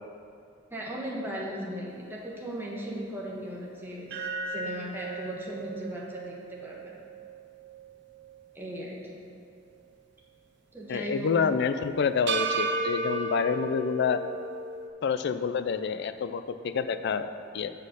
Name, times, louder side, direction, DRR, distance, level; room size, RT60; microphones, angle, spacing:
voice 1, 0.7-4.2 4.5-7.0 8.5-9.2 10.7-11.3, equal, 10° right, -4 dB, 1.2 m, -37 dB
sound 1, 4.1-8.4 8.8-8.9 12.3-14.9, right 3 dB, 60° right, 0.6 m, -34 dB
voice 2, 10.9-14.2 15.0-17.7, left 6 dB, 60° left, 10 dB, 0.3 m, -28 dB
7.4 x 4.2 x 6.5 m, 2.3 s
head